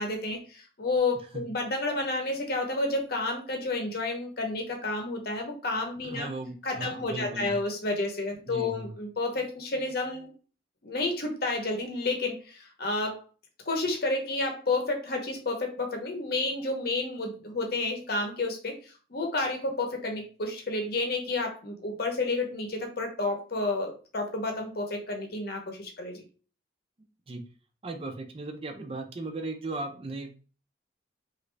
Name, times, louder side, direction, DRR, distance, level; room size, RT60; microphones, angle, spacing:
voice 1, 0.0-6.3 6.6-10.3 10.8-13.2 13.7-26.2, left 2 dB, 55° left, 3 dB, 0.8 m, -30 dB
voice 2, 6.0-7.6 8.4-8.9 27.3-27.4 27.8-30.3, right 2 dB, 30° right, 5 dB, 0.5 m, -37 dB
3.1 x 2.5 x 3.2 m, 0.36 s
head